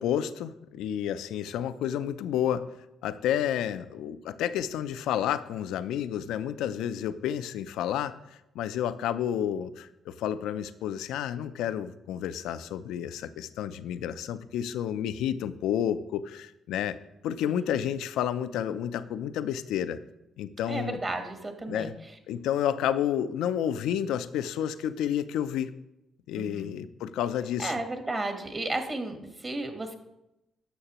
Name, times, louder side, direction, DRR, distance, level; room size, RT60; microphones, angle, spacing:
voice 1, 0.0-2.6 3.0-8.2 8.5-17.0 17.2-20.0 20.4-21.0 21.7-21.9 22.3-25.7 26.3-27.8, left 10 dB, 90° left, 13 dB, 0.4 m, -30 dB
voice 2, 17.4-17.8 20.7-21.9 26.3-26.7 27.6-29.9, right 2 dB, 30° right, 5 dB, 1.1 m, -33 dB
11.5 x 6.5 x 2.9 m, 0.89 s
cardioid pair, 90°, 0 cm